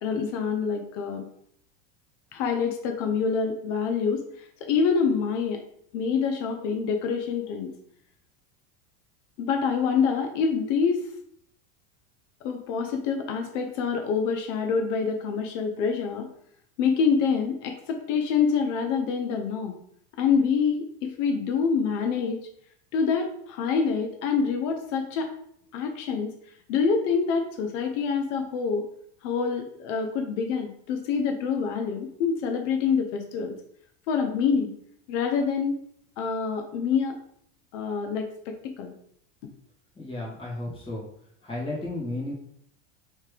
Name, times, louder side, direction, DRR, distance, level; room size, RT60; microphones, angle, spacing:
voice 1, 0.0-1.3 2.3-5.6 5.9-7.7 9.4-11.1 12.4-16.3 16.8-19.8 20.2-22.4 22.9-25.3 25.7-26.3 26.7-28.8 29.2-33.6 34.1-34.7 35.1-35.8 36.2-37.2 37.7-38.9, left 5 dB, 70° left, 4 dB, 0.7 m, -26 dB
voice 2, 40.0-41.0 41.4-42.3, left 2 dB, 15° left, -6 dB, 1.7 m, -33 dB
3.3 x 3.3 x 4.9 m, 0.67 s
supercardioid pair, 160°, 37 cm